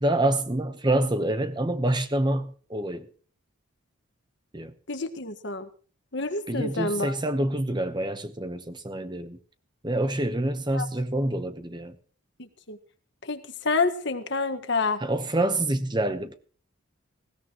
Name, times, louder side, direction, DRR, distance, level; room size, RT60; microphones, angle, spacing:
voice 1, 0.0-3.1 4.5-4.7 6.5-9.4 9.8-12.0 15.0-16.4, right 1 dB, 20° right, 1.0 m, -27 dB
voice 2, 4.9-5.7 6.1-7.1 10.7-10.9 12.4-12.8 13.2-15.0, left 3 dB, 55° left, 1.6 m, -28 dB
20.0 x 16.5 x 3.1 m
head